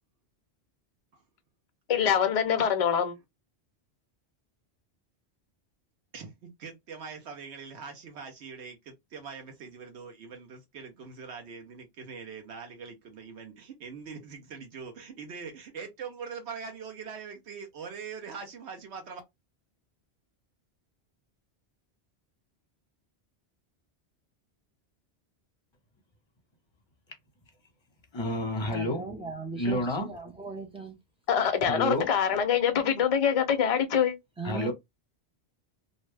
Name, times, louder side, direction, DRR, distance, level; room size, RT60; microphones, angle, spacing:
voice 1, 1.9-3.1 31.3-34.1, left 8 dB, 45° left, 0.5 m, -24 dB
voice 2, 6.1-19.2, right 5 dB, 85° right, 1.0 m, -42 dB
voice 3, 28.1-29.1 29.5-30.1 31.7-32.4 34.4-34.7, left 1 dB, 30° left, 0.8 m, -30 dB
voice 4, 28.7-31.0 34.4-34.7, right 4 dB, 5° right, 0.5 m, -38 dB
2.6 x 2.1 x 3.2 m
omnidirectional pair, 1.1 m